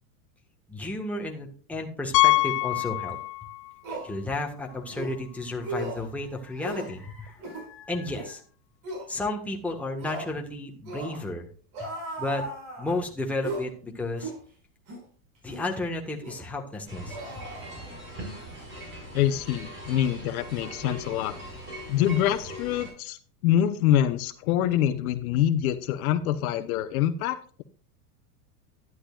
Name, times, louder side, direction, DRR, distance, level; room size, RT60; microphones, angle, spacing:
voice 1, 0.7-3.2 4.0-8.4 9.1-11.5 12.2-12.4 12.8-14.3 15.4-17.2, left 2 dB, 5° left, 0 dB, 1.5 m, -32 dB
Piano, 2.1-3.7 4.0-4.2 4.8-4.9 5.1-5.2 7.3-7.4, left 20 dB, 85° left, 0.6 m, -24 dB
sound 1, 3.1-3.2 3.8-4.1 4.9-5.2 5.6-6.1 6.6-6.9 7.4-7.7 8.1-8.3 8.8-9.1 10.0-10.3 10.8-11.2 11.7-13.0 13.4-13.7 14.2-14.4 14.9-15.0 15.5-15.7 16.2-16.4 17.1-18.1 18.4-18.6, right 1 dB, 40° right, 5.9 m, -37 dB
sound 2, 16.9-22.9, equal, 25° right, 5.2 m, -41 dB
voice 2, 19.1-21.4 21.9-23.2 23.4-27.6, left 11 dB, 70° left, 11 dB, 1.0 m, -25 dB
11.5 x 11.0 x 2.4 m, 0.43 s
supercardioid pair, 145°, 45 cm